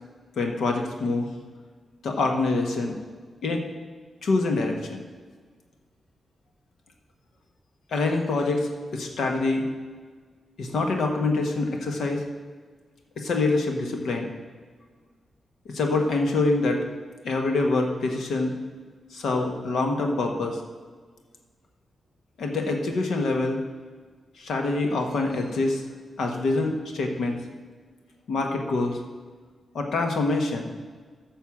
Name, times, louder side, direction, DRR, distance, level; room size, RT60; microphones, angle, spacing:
voice 1, 0.4-1.3 2.0-3.0 3.4-3.6 4.2-5.0 7.9-9.7 10.6-12.2 13.2-14.3 15.7-16.8 17.2-18.5 19.1-20.6 22.4-23.6 24.4-25.8 26.2-27.4 28.3-29.0 29.7-30.7, left 3 dB, 85° left, 3 dB, 1.4 m, -25 dB
9.4 x 5.6 x 7.3 m, 1.5 s
cardioid pair, 100°, 0 cm